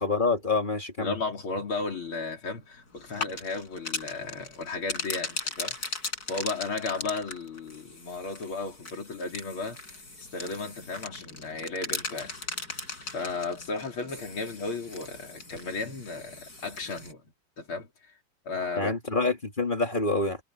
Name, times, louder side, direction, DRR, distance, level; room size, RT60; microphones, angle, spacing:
voice 1, 0.0-1.1 18.8-20.4, left 3 dB, 25° left, 2.5 m, -26 dB
voice 2, 1.0-5.8 6.3-9.8 10.2-12.3 13.1-17.2 17.6-17.9 18.5-18.9, left 3 dB, 75° left, 4.2 m, -34 dB
sound 1, 3.0-17.1, left 3 dB, 45° left, 6.3 m, -38 dB
omnidirectional pair, 2.3 m